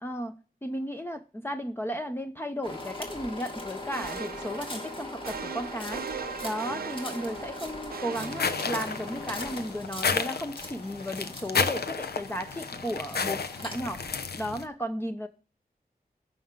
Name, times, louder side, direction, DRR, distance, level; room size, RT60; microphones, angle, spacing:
voice 1, 0.0-6.0 6.4-14.0 14.4-15.3, equal, 15° left, 0.7 m, -34 dB
sound 1, 2.6-14.3, left 1 dB, 30° left, 2.0 m, -41 dB
sound 2, 3.9-9.2, right 7 dB, 70° right, 0.5 m, -40 dB
sound 3, 8.2-14.7, left 5 dB, 90° left, 0.8 m, -32 dB
14.5 x 5.6 x 3.7 m
wide cardioid pair, 75°, 16 cm